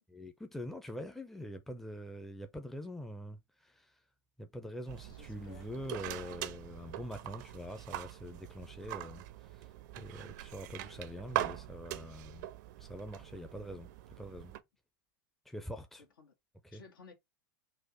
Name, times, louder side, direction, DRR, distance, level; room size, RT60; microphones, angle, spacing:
voice 1, 0.1-3.9 4.4-9.7 10.0-12.5 12.8-13.9 14.2-14.5 15.5-16.0 16.6-16.8, equal, ahead, 0.6 m, -44 dB
sound 1, 4.9-14.6, right 14 dB, 55° right, 0.5 m, -42 dB
voice 2, 5.1-5.7 16.0-16.3 16.7-17.1, left 4 dB, 70° left, 1.5 m, -56 dB
4.1 x 2.5 x 4.1 m
figure-of-eight pair, 90°, 12 cm